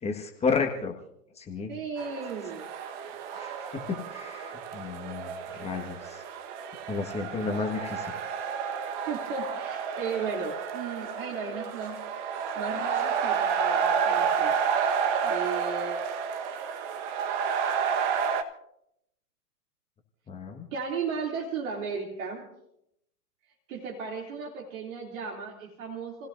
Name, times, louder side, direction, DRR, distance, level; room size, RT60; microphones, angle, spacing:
voice 1, 0.0-0.9 1.4-1.7 3.3-6.2 6.9-8.2 20.3-20.7, left 4 dB, 15° left, 3 dB, 1.6 m, -32 dB
voice 2, 1.7-2.7 9.1-12.0 12.5-14.5 15.2-16.0 20.7-22.4 23.7-26.3, right 5 dB, 55° right, -1 dB, 3.0 m, -35 dB
sound 1, 2.0-18.4, right 6 dB, 35° right, 1.4 m, -30 dB
29.5 x 17.0 x 2.6 m, 0.77 s
hypercardioid pair, 125°, 46 cm